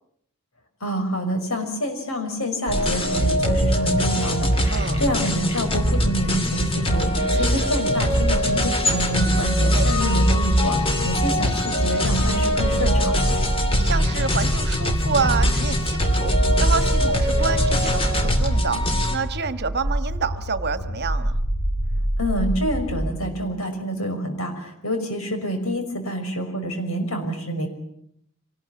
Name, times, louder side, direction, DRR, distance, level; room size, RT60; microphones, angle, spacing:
voice 1, 0.8-13.2 22.2-27.7, equal, 75° left, 5 dB, 5.9 m, -27 dB
sound 1, 2.7-19.2, equal, 25° left, 2.8 m, -21 dB
voice 2, 4.7-5.0 7.3-7.7 9.7-9.8 13.8-16.3 16.6-18.8 19.1-21.4, right 4 dB, 50° right, 11 dB, 1.5 m, -28 dB
sound 2, 12.7-23.3, right 1 dB, 55° left, 4.6 m, -26 dB
25.5 x 19.5 x 8.7 m, 0.70 s
head